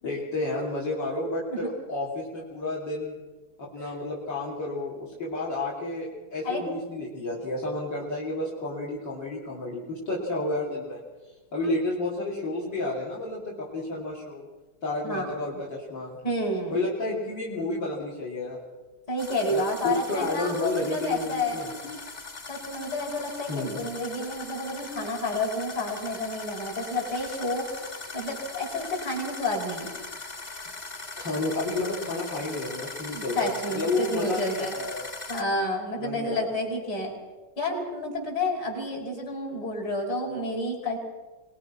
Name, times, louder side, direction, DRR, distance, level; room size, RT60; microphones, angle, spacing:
voice 1, 0.0-3.2 3.6-11.0 11.5-14.5 14.8-16.2 16.7-18.6 19.5-22.0 23.5-23.8 31.2-35.1 36.0-36.5, left 2 dB, 75° left, -6 dB, 3.9 m, -31 dB
voice 2, 15.0-15.3 16.2-16.8 19.1-21.6 22.5-27.9 28.1-29.9 33.1-34.8 35.3-37.1 37.6-41.0, left 1 dB, 60° left, -2 dB, 6.2 m, -30 dB
sound 1, 19.2-35.4, left 3 dB, 30° left, 1.1 m, -40 dB
25.0 x 20.5 x 5.9 m, 1.3 s
omnidirectional pair, 1.9 m